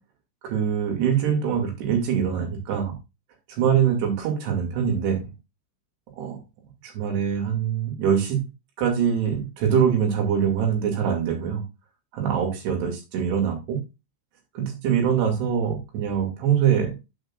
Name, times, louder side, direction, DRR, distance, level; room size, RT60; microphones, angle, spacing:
voice 1, 0.4-2.9 3.6-5.2 6.2-6.4 6.8-8.5 8.8-11.6 12.1-13.8 14.6-16.9, right 8 dB, 60° right, 2 dB, 4.2 m, -23 dB
8.1 x 8.0 x 2.4 m, 0.25 s
omnidirectional pair, 5.7 m